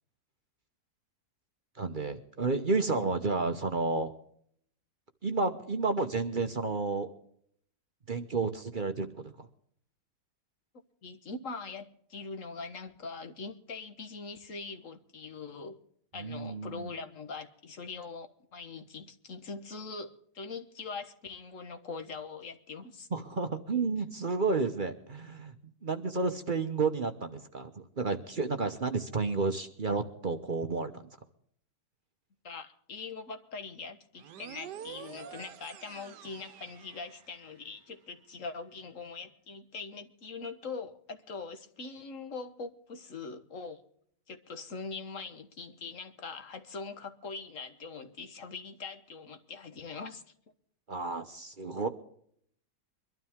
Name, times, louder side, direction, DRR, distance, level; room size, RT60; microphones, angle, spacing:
voice 1, 1.8-4.1 5.2-7.1 8.1-9.5 16.2-16.9 23.1-25.5 25.8-31.1 50.9-51.9, right 3 dB, 40° right, 7 dB, 0.9 m, -31 dB
voice 2, 11.0-15.8 16.1-23.1 32.4-43.8 44.3-50.2, left 4 dB, 50° left, 8 dB, 1.5 m, -42 dB
sound 1, 34.2-37.7, right 9 dB, 80° right, 1.4 m, -47 dB
23.5 x 12.5 x 3.6 m, 0.65 s
omnidirectional pair, 1.8 m